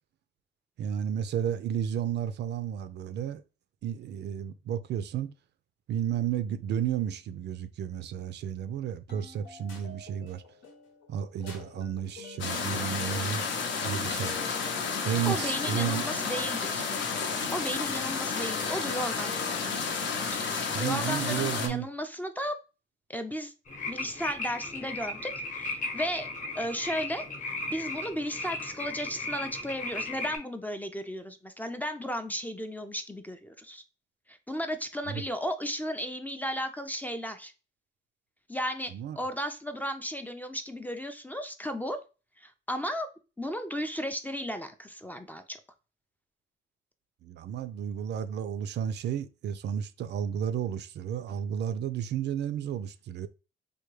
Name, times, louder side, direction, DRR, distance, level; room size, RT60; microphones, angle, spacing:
voice 1, 0.8-3.4 3.8-5.3 5.9-10.4 11.1-13.4 13.8-14.4 15.0-16.0 20.7-21.9 35.1-35.2 38.9-39.2 47.2-53.3, right 9 dB, 60° right, 0.4 m, -32 dB
sound 1, 9.1-21.2, left 4 dB, 85° left, 1.0 m, -49 dB
sound 2, 12.4-21.7, left 5 dB, 70° left, 0.7 m, -31 dB
voice 2, 15.2-16.9 17.5-22.6 23.1-23.5 23.9-26.3 26.6-33.8 34.3-37.5 38.5-42.0 42.4-43.1 43.4-45.6, equal, 10° left, 0.4 m, -35 dB
sound 3, 23.7-30.4, left 2 dB, 40° left, 0.9 m, -36 dB
3.5 x 2.2 x 3.1 m
cardioid pair, 90°, 20 cm